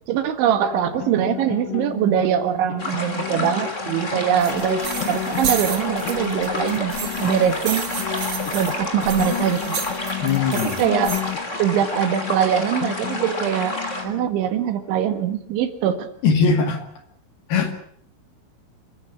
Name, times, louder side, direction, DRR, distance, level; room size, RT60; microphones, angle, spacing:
voice 1, 0.1-4.8 5.1-7.8 8.5-9.8 10.8-11.2 11.6-13.8 14.0-16.1, right 10 dB, 70° right, 9 dB, 3.9 m, -22 dB
sound 1, 0.6-15.5, left 15 dB, 75° left, 3.8 m, -32 dB
sound 2, 2.8-14.0, left 1 dB, 20° left, 2.7 m, -30 dB
sound 3, 4.4-11.2, right 6 dB, 45° right, 2.7 m, -32 dB
voice 2, 10.2-10.8 16.2-16.8 17.5-17.7, left 5 dB, 55° left, 7 dB, 3.7 m, -20 dB
27.5 x 15.5 x 8.5 m, 0.63 s
omnidirectional pair, 5.7 m